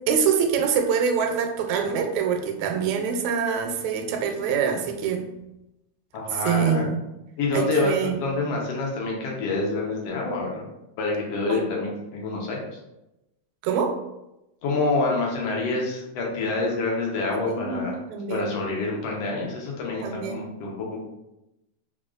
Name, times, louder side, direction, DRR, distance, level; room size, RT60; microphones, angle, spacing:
voice 1, 0.1-5.3 6.3-7.0 7.5-8.2 11.5-11.6 13.6-13.9 17.5-18.6 20.0-20.4, right 6 dB, 80° right, 4 dB, 1.7 m, -25 dB
voice 2, 6.1-6.8 7.4-10.6 11.0-12.6 14.6-18.0 18.3-21.0, left 3 dB, 70° left, -2 dB, 1.5 m, -27 dB
4.9 x 2.2 x 2.3 m, 0.91 s
omnidirectional pair, 3.4 m